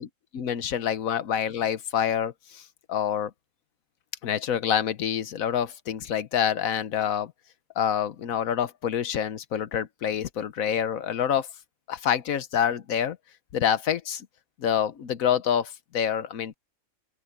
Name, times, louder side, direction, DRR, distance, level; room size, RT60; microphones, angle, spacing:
voice 1, 0.3-3.3 4.2-7.3 7.8-11.5 11.9-13.2 13.5-14.3 14.6-16.5, left 9 dB, 85° left, 1.4 m, -27 dB
open air
omnidirectional pair, 1.4 m